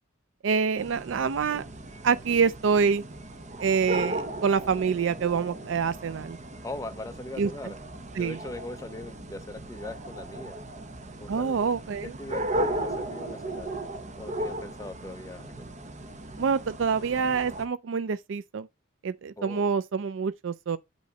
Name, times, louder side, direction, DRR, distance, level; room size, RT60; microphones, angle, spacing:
voice 1, 0.4-1.7 2.0-3.0 3.6-6.4 7.4-7.5 8.2-8.4 11.3-12.2 16.4-18.7 19.0-20.8, right 6 dB, 75° right, 0.4 m, -26 dB
sound 1, 0.8-17.7, right 1 dB, 40° right, 0.9 m, -36 dB
voice 2, 6.6-7.8 8.1-10.6 11.2-11.7 12.0-13.7 14.2-15.7 19.4-19.6, left 2 dB, 15° left, 0.6 m, -40 dB
8.4 x 3.1 x 6.3 m
head